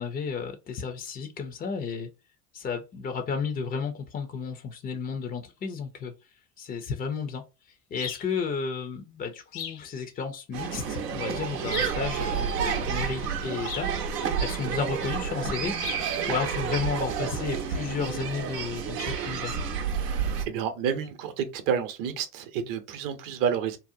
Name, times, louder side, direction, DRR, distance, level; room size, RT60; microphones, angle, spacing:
voice 1, 0.0-2.1 2.5-6.1 6.6-7.4 7.9-13.9 14.4-15.7 16.3-19.6, left 5 dB, 20° left, 0.3 m, -32 dB
sound 1, 8.0-8.3 9.5-9.9 11.7-12.0 13.6-14.0 15.8-16.1, left 8 dB, 70° left, 0.7 m, -37 dB
sound 2, 10.5-20.4, right 7 dB, 90° right, 0.6 m, -30 dB
voice 2, 19.9-23.8, right 7 dB, 45° right, 0.7 m, -30 dB
2.7 x 2.0 x 2.5 m
hypercardioid pair, 75°, 47 cm